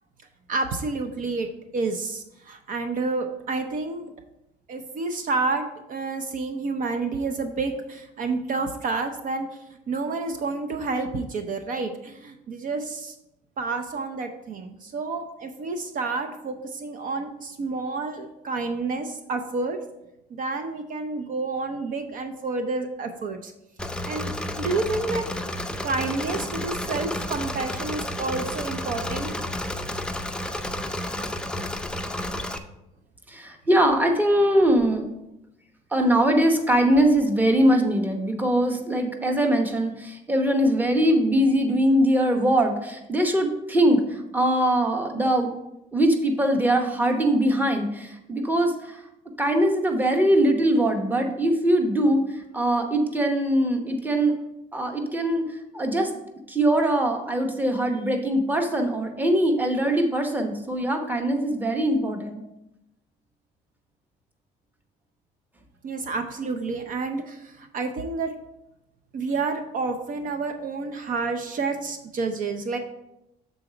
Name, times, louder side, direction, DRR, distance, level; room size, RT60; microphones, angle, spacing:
voice 1, 0.5-4.1 4.7-9.6 9.9-13.2 13.6-19.8 20.3-23.5 24.0-25.3 25.8-29.3 65.8-68.3 69.1-72.8, right 3 dB, 55° right, 7 dB, 0.6 m, -29 dB
Engine / Mechanisms, 23.8-32.6, left 1 dB, 5° left, 0.5 m, -31 dB
voice 2, 33.3-35.1 35.9-45.5 45.9-49.0 49.4-54.4 54.7-56.1 56.5-62.4, right 1 dB, 10° right, 4 dB, 0.9 m, -22 dB
7.0 x 4.0 x 4.9 m, 0.89 s
cardioid pair, 110°, 17 cm